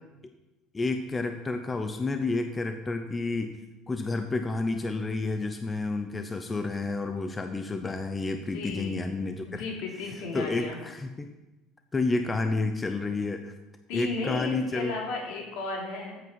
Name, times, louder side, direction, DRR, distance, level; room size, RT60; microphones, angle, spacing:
voice 1, 0.7-3.6 3.9-9.7 10.3-11.3 11.9-13.5 13.9-14.9, left 3 dB, 15° left, 6 dB, 0.6 m, -30 dB
voice 2, 8.3-9.0 9.5-10.8 13.9-16.2, left 3 dB, 75° left, -1 dB, 3.4 m, -34 dB
14.0 x 8.1 x 4.6 m, 1.0 s
cardioid pair, 165°, 0 cm